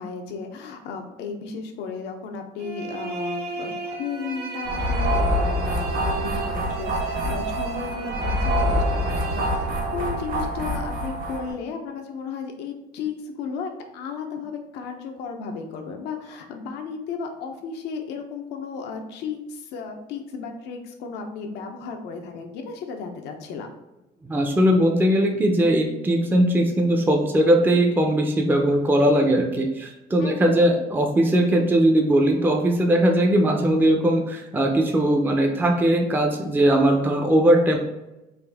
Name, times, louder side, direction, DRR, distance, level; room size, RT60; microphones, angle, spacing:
voice 1, 0.0-23.7 30.2-30.7, left 5 dB, 90° left, 4 dB, 0.7 m, -34 dB
sound 1, 2.6-10.3, right 5 dB, 75° right, 0.6 m, -35 dB
sound 2, 4.6-11.5, equal, 55° right, 1.1 m, -25 dB
voice 2, 24.2-37.8, right 1 dB, 10° right, 1 dB, 0.5 m, -20 dB
3.9 x 2.5 x 3.4 m, 0.98 s
cardioid pair, 110°, 17 cm